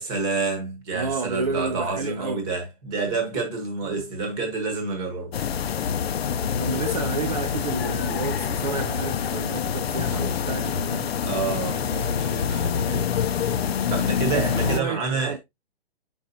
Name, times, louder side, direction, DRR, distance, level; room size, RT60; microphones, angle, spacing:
voice 1, 0.0-5.3 11.2-13.2 13.9-15.4, right 4 dB, 10° right, 1.0 m, -29 dB
voice 2, 0.9-2.4 6.6-11.1 14.3-15.4, right 4 dB, 40° right, 0.5 m, -31 dB
sound 1, 5.3-14.8, left 7 dB, 70° left, 0.6 m, -26 dB
7.6 x 5.4 x 2.7 m
hypercardioid pair, 175°, 32 cm